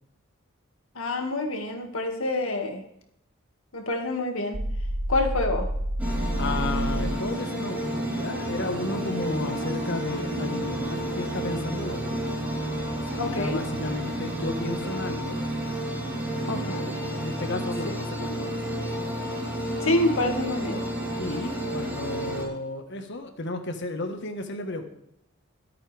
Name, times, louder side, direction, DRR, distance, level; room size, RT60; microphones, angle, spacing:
voice 1, 1.0-2.8 3.7-4.6 5.1-5.7 13.2-13.6 16.3-16.8 17.8-17.9 19.8-20.9, left 2 dB, 90° left, 3 dB, 2.3 m, -27 dB
sound 1, 4.5-7.2, equal, 40° right, 1.3 m, -29 dB
sound 2, 6.0-22.4, right 1 dB, 10° right, 4.3 m, -31 dB
voice 2, 6.4-12.2 13.1-15.4 16.0-19.2 21.2-24.8, left 2 dB, 60° left, 6 dB, 1.6 m, -33 dB
23.5 x 8.7 x 3.5 m, 0.78 s
head